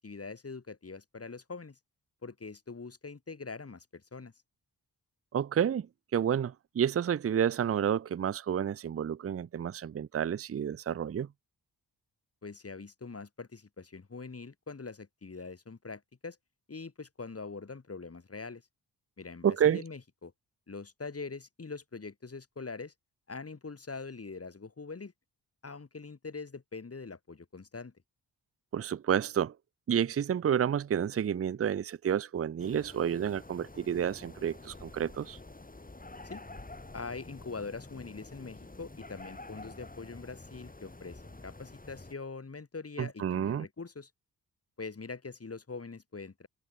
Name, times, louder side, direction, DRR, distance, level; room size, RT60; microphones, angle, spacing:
voice 1, 0.0-1.8 2.2-4.3 12.4-16.4 16.7-18.6 19.2-20.3 20.7-22.9 23.3-25.1 25.6-27.9 36.2-36.4 36.9-44.1 44.8-46.5, left 4 dB, 35° left, 4.8 m, -43 dB
voice 2, 5.3-5.9 6.1-11.3 19.4-19.8 28.7-29.5 29.9-35.4 43.0-43.7, right 8 dB, 35° right, 0.6 m, -30 dB
sound 1, 32.6-42.1, left 2 dB, 20° left, 6.4 m, -48 dB
cardioid pair, 75°, 40 cm